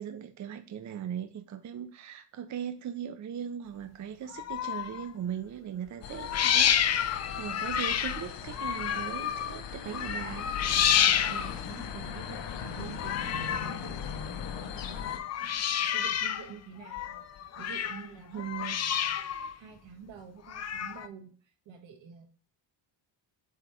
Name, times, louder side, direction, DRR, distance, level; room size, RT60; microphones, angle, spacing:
voice 1, 0.0-10.5 18.3-18.8, right 9 dB, 40° right, 8 dB, 0.5 m, -39 dB
sound 1, 4.3-5.1 6.1-9.6 9.9-11.7 12.9-13.9 14.9-16.5 16.8-18.1 18.4-19.5 20.5-21.1, left 9 dB, 40° left, 0.4 m, -29 dB
binaural short, 6.0-15.2, left 7 dB, 65° left, 0.9 m, -39 dB
voice 2, 11.3-19.2 19.6-22.3, right 6 dB, 80° right, 5 dB, 1.4 m, -48 dB
7.7 x 3.0 x 4.7 m, 0.42 s
cardioid pair, 145°, 45 cm